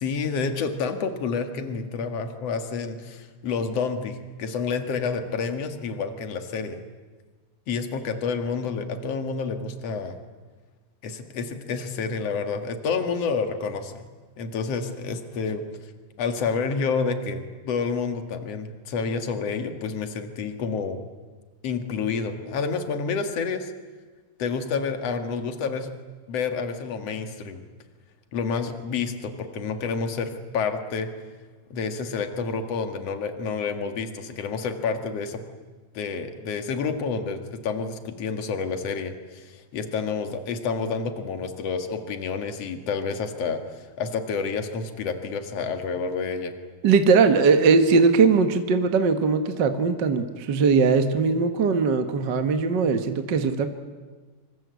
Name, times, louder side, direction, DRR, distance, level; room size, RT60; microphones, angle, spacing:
voice 1, 0.0-6.8 7.7-10.2 11.0-14.1 14.4-15.6 16.2-21.0 21.6-23.7 24.4-25.9 26.3-27.6 28.3-31.1 31.7-35.4 35.9-46.5, left 5 dB, 60° left, 7 dB, 2.9 m, -29 dB
voice 2, 46.8-53.7, right 5 dB, 45° right, 8 dB, 1.6 m, -20 dB
27.0 x 24.0 x 8.3 m, 1.4 s
omnidirectional pair, 3.4 m